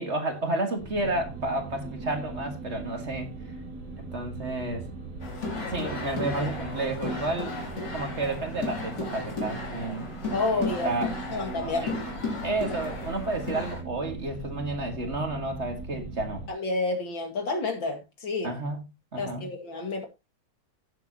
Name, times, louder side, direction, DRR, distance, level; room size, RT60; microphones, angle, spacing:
voice 1, 0.0-3.3 4.0-4.9 5.7-7.5 7.9-10.1 10.7-11.1 11.6-11.9 12.4-16.5 18.4-19.5, right 2 dB, 35° right, 2.0 m, -31 dB
sound 1, 0.8-16.5, right 3 dB, 60° right, 2.7 m, -40 dB
sound 2, 5.2-13.8, left 3 dB, 65° left, 3.6 m, -35 dB
voice 2, 10.3-10.9 11.3-12.0 16.5-18.5 19.2-20.0, left 3 dB, 85° left, 3.0 m, -29 dB
16.5 x 7.5 x 2.9 m
omnidirectional pair, 2.0 m